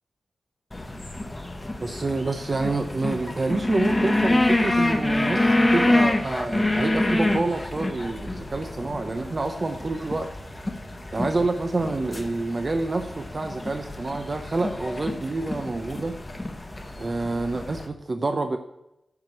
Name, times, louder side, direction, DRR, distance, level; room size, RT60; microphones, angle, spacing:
sound 1, 0.7-17.9, left 1 dB, 20° left, 1.1 m, -27 dB
voice 1, 1.8-10.3 11.1-16.1 17.0-18.6, right 3 dB, 35° right, 6 dB, 0.7 m, -27 dB
10.5 x 5.1 x 7.3 m, 0.87 s
wide cardioid pair, 165°, 0 cm